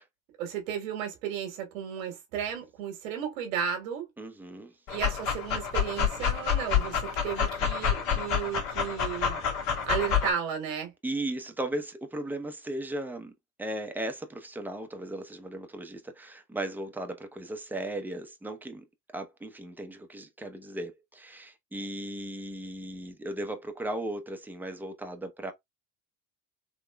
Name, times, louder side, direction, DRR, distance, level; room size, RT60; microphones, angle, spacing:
voice 1, 0.4-4.1 4.9-9.4 9.9-10.9, right 8 dB, 80° right, 1.4 m, -34 dB
voice 2, 4.2-4.7 11.0-13.3 13.6-18.8 19.1-25.5, right 1 dB, 5° right, 0.7 m, -36 dB
Dog, 4.9-10.3, left 7 dB, 55° left, 1.8 m, -28 dB
3.6 x 3.0 x 2.2 m
hypercardioid pair, 75°, 39 cm